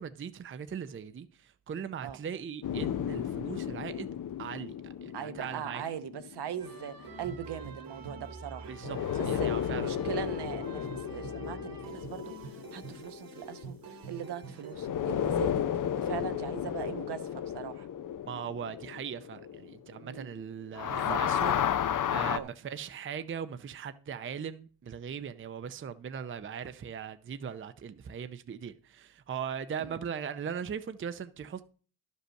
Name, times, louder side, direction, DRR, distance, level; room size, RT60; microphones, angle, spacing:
voice 1, 0.0-4.1 4.4-4.7 5.0-5.8 8.7-9.0 9.3-10.1 18.3-31.7, right 7 dB, 30° right, 0.5 m, -39 dB
Whoosh Epic, 2.6-7.1 8.8-14.3 14.7-20.4 20.7-22.4, left 9 dB, 50° left, 0.6 m, -33 dB
voice 2, 5.1-8.7 9.2-12.3 12.7-17.9 20.0-20.3 20.9-21.2 22.3-22.5 29.8-30.0, right 9 dB, 70° right, 1.0 m, -40 dB
sound 1, 6.6-14.8, right 5 dB, 55° right, 1.7 m, -45 dB
11.5 x 5.4 x 6.3 m
wide cardioid pair, 140°, 42 cm